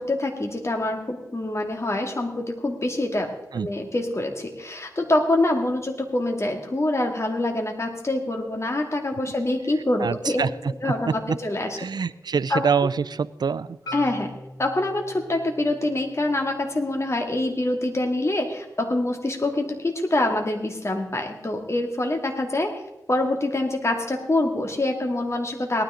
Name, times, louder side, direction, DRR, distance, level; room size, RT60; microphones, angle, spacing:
voice 1, 0.0-3.3 3.5-10.4 10.8-11.7 12.5-12.6 13.9-14.3 14.6-22.7 23.1-25.8, left 1 dB, 40° left, 3 dB, 2.4 m, -25 dB
voice 2, 10.0-11.4 11.8-13.8, right 6 dB, 80° right, 18 dB, 0.4 m, -25 dB
Marimba xylophone, 13.9-18.0, left 2 dB, 70° left, 3.4 m, -43 dB
18.0 x 13.0 x 3.8 m, 0.93 s
wide cardioid pair, 65°, 7 cm